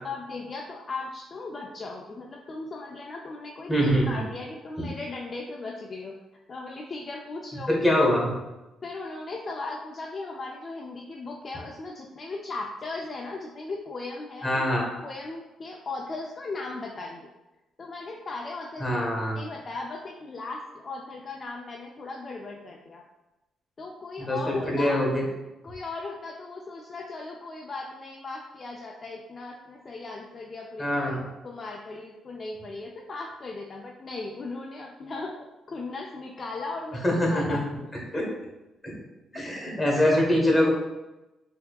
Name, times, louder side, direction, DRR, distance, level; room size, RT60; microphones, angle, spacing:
voice 1, 0.0-6.1 6.5-7.8 8.8-14.6 15.0-17.3 17.8-19.0 19.4-23.0 23.8-25.1 25.6-31.1 31.4-35.3 35.7-37.6 39.3-39.4, left 3 dB, 40° left, -1 dB, 0.4 m, -37 dB
voice 2, 3.7-4.2 7.7-8.3 14.4-14.8 18.8-19.4 24.2-25.2 30.8-31.2 37.0-37.6 38.1-38.3 38.8-38.9 39.3-40.7, equal, 15° left, -2 dB, 1.2 m, -24 dB
4.4 x 2.7 x 2.3 m, 1.0 s
cardioid pair, 90°, 0 cm